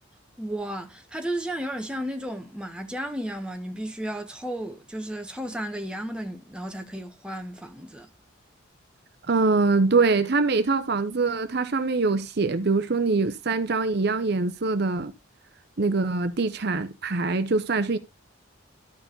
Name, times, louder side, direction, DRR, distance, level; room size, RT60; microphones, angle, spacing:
voice 1, 0.4-8.1, right 1 dB, 5° right, 1.1 m, -33 dB
voice 2, 9.3-15.1 15.8-18.0, right 3 dB, 50° right, 0.7 m, -23 dB
12.5 x 4.8 x 3.9 m
head